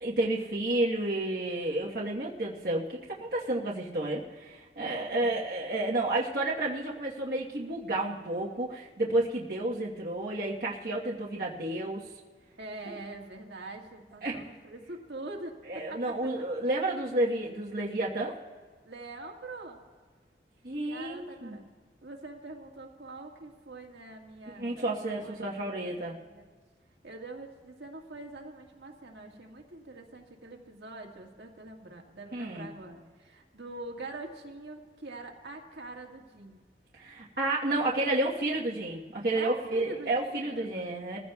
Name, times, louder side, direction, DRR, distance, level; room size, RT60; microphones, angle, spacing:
voice 1, 0.0-12.0 14.2-14.4 15.7-18.4 20.6-21.6 24.6-26.1 32.3-32.7 36.9-41.2, right 2 dB, 55° right, -5 dB, 1.2 m, -31 dB
voice 2, 4.8-5.3 12.6-15.6 15.9-16.1 18.8-19.8 20.8-21.7 22.0-26.5 27.0-36.6 38.1-38.6 39.3-40.8, right 2 dB, 80° right, 1 dB, 1.7 m, -44 dB
22.5 x 15.0 x 2.3 m, 1.5 s
head